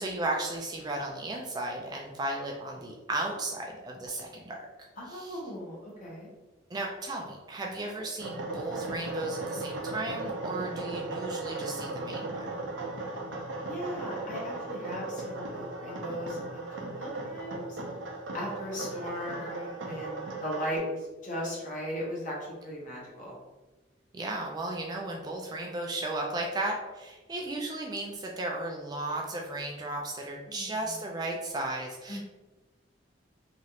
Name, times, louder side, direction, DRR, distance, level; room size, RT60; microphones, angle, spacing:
voice 1, 0.0-4.6 5.1-5.4 6.7-12.4 24.1-32.2, right 2 dB, 20° right, 0 dB, 0.3 m, -35 dB
voice 2, 5.0-6.3 13.6-17.8 18.3-23.4 30.5-30.9 32.1-32.2, equal, 45° left, -4 dB, 0.9 m, -37 dB
sound 1, 8.2-20.8, right 2 dB, 80° right, 0.5 m, -37 dB
3.0 x 2.4 x 2.8 m, 1.2 s
head